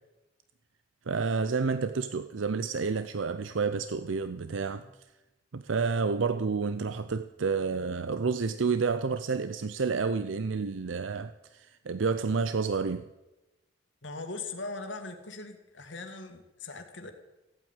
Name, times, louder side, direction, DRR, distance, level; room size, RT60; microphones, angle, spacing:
voice 1, 1.1-4.8 5.5-13.1, right 4 dB, 80° right, 0.6 m, -30 dB
voice 2, 14.0-17.1, left 3 dB, 70° left, 1.9 m, -40 dB
15.5 x 8.7 x 9.0 m
head